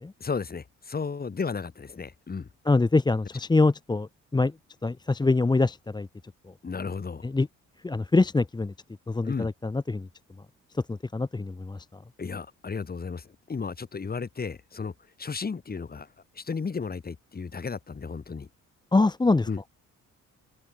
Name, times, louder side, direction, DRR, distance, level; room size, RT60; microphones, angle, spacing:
voice 1, 0.2-2.5 6.6-7.3 9.2-9.5 12.2-14.9 15.2-16.1 16.3-18.5 19.5-19.6, left 5 dB, 30° left, 2.5 m, -34 dB
voice 2, 2.7-4.5 4.8-6.1 7.2-7.5 7.8-8.7 9.1-10.1 10.7-11.9 18.9-19.5, left 3 dB, 15° left, 0.9 m, -24 dB
cardioid pair, 90°, 30 cm